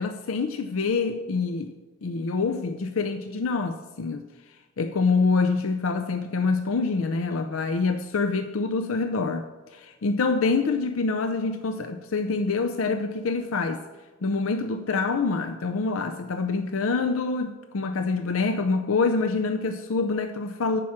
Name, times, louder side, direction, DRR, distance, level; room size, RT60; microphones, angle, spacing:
voice 1, 0.0-1.7 2.0-4.2 4.8-13.8 14.2-20.8, left 4 dB, 85° left, 0.5 m, -26 dB
10.5 x 4.9 x 7.2 m
head